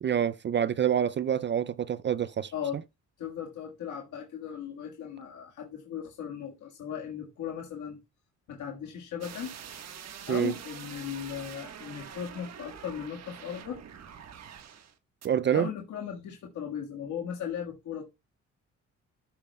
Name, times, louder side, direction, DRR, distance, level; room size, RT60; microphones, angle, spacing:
voice 1, 0.0-2.5 10.3-10.5 15.2-15.7, right 9 dB, 40° right, 0.4 m, -27 dB
voice 2, 3.2-8.0 8.5-9.5 10.3-13.8 15.5-18.0, left 8 dB, 75° left, 1.7 m, -37 dB
sound 1, 9.2-14.9 15.2-15.3, right 8 dB, 60° right, 1.4 m, -45 dB
13.0 x 8.1 x 2.3 m
cardioid pair, 90°, 30 cm